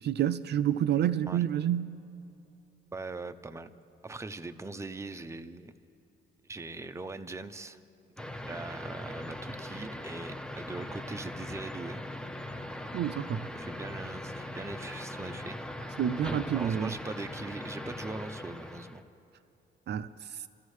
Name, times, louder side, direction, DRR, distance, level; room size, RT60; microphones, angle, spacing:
voice 1, 0.0-1.9 12.9-13.4 16.0-16.9 19.9-20.1, right 10 dB, 60° right, 0.4 m, -28 dB
voice 2, 2.9-3.7 4.0-5.7 6.4-7.8 8.5-12.0 13.5-15.6 16.5-19.0, right 3 dB, 15° right, 0.6 m, -41 dB
sound 1, 8.2-19.0, left 1 dB, 5° left, 0.9 m, -40 dB
28.0 x 14.0 x 3.2 m
cardioid pair, 90°, 20 cm